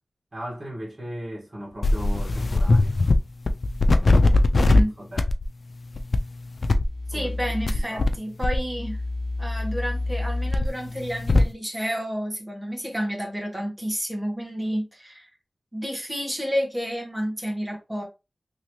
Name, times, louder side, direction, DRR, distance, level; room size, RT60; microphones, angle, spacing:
voice 1, 0.3-2.9 4.8-5.3 7.1-7.3 7.7-8.1, equal, 35° right, 1.6 m, -37 dB
sound 1, 1.8-3.2 3.5-4.8 5.2-5.4 5.9-6.2 6.6-8.1 8.4-11.5, left 2 dB, 60° left, 0.3 m, -21 dB
voice 2, 4.6-4.9 7.1-9.0 9.4-15.3 15.7-18.0, equal, 15° right, 1.3 m, -30 dB
2.9 x 2.9 x 3.0 m
wide cardioid pair, 90°, 0 cm